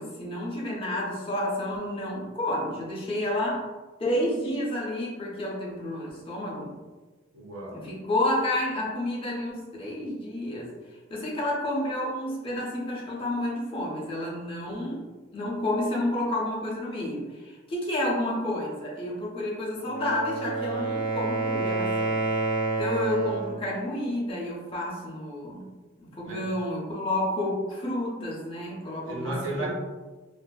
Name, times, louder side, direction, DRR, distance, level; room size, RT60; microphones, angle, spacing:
voice 1, 0.0-3.7 4.0-6.7 7.7-10.7 11.1-15.1 15.3-22.2 22.8-25.7 26.0-29.7, left 1 dB, 30° left, -5 dB, 0.6 m, -30 dB
voice 2, 7.3-7.8 26.2-26.4 29.1-29.7, right 1 dB, 85° right, -3 dB, 0.7 m, -33 dB
Wind instrument woodwind instrument, 19.8-23.6, right 3 dB, 50° right, 0.4 m, -28 dB
2.5 x 2.4 x 2.2 m, 1.3 s
head